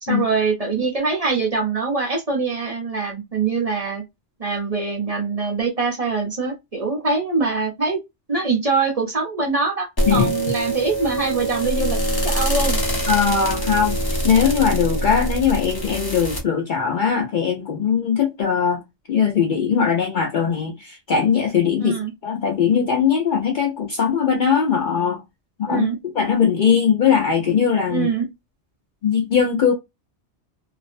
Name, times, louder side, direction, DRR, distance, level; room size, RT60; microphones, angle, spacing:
voice 1, 0.0-4.0 4.4-8.0 8.3-12.0 12.2-12.8 21.8-22.1 25.7-26.0 27.9-28.3, right 4 dB, 35° right, 0.8 m, -23 dB
sound 1, 10.0-16.4, right 1 dB, 20° left, 0.7 m, -24 dB
voice 2, 13.1-18.8 19.1-25.2 25.6-28.1 29.0-29.7, left 7 dB, 55° left, 0.6 m, -20 dB
2.5 x 2.0 x 2.4 m
omnidirectional pair, 1.2 m